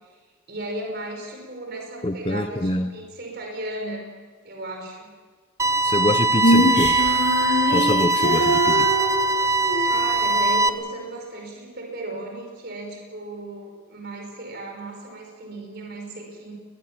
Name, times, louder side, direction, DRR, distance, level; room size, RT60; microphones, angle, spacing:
voice 1, 0.5-4.1 4.4-5.1 9.8-16.5, right 2 dB, 50° right, 5.1 m, -35 dB
voice 2, 2.0-2.9 5.8-7.0 7.7-8.9, left 1 dB, 25° left, 0.7 m, -25 dB
sound 1, 5.6-10.7, right 2 dB, 15° right, 0.6 m, -21 dB
Female singing, 6.4-9.9, equal, 60° left, 7.8 m, -23 dB
22.0 x 21.5 x 7.4 m
head